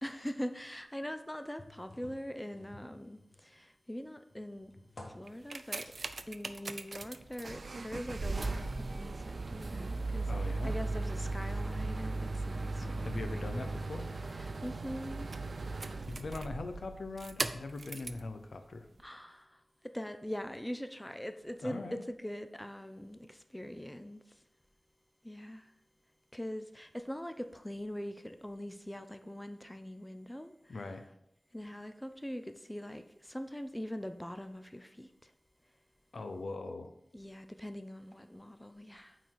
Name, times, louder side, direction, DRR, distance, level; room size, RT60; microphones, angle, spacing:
voice 1, 0.0-4.7 5.1-5.9 6.3-13.8 14.4-15.4 16.0-16.1 19.0-24.4 25.2-25.7 26.3-30.8 31.5-35.3 37.1-39.2, equal, 10° left, 0.4 m, -43 dB
sound 1, 1.6-3.6 4.0-5.9 7.0-7.9 8.6-8.7, left 2 dB, 50° left, 1.3 m, -54 dB
sound 2, 5.3-18.3 19.0-19.1, right 3 dB, 55° right, 0.4 m, -37 dB
voice 2, 10.3-10.8 12.8-14.1 16.1-18.9 21.6-22.0 30.7-31.0 36.1-36.9, left 3 dB, 70° left, 0.7 m, -41 dB
9.0 x 4.0 x 4.7 m
wide cardioid pair, 100°, 0 cm